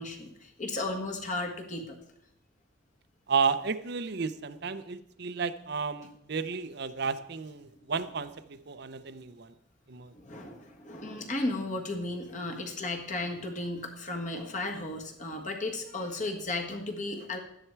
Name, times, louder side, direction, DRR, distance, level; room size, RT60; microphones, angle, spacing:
voice 1, 0.0-2.0 10.1-17.4, left 2 dB, 35° left, 3 dB, 1.5 m, -35 dB
voice 2, 3.3-9.5 9.9-10.1, right 5 dB, 55° right, 12 dB, 0.6 m, -32 dB
12.0 x 10.0 x 4.6 m, 0.77 s
head